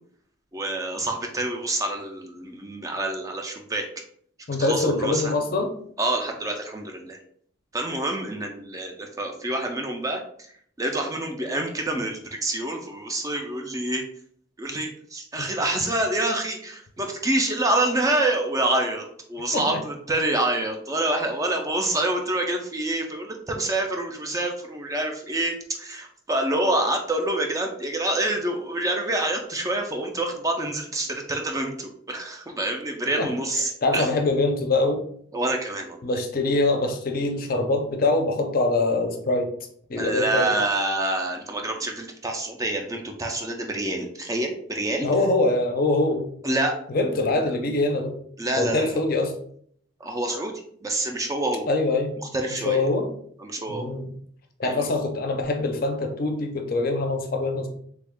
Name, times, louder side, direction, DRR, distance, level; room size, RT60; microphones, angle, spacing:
voice 1, 0.5-3.8 4.6-5.3 6.0-7.2 7.7-10.2 10.8-14.0 14.6-34.1 35.3-36.0 40.0-45.1 46.4-46.7 48.4-49.0 50.0-50.5 50.8-51.6 52.3-52.9 53.4-53.9 54.6-54.8, right 1 dB, 15° right, 3 dB, 0.3 m, -27 dB
voice 2, 4.5-5.7 15.4-15.5 19.5-19.8 33.2-33.3 33.8-35.0 36.0-39.5 39.9-40.5 45.0-46.3 46.9-48.1 48.6-49.3 51.7-52.1 52.5-53.1 53.7-54.2 54.6-57.7, left 2 dB, 45° left, 4 dB, 0.5 m, -24 dB
3.3 x 2.3 x 3.4 m, 0.63 s
head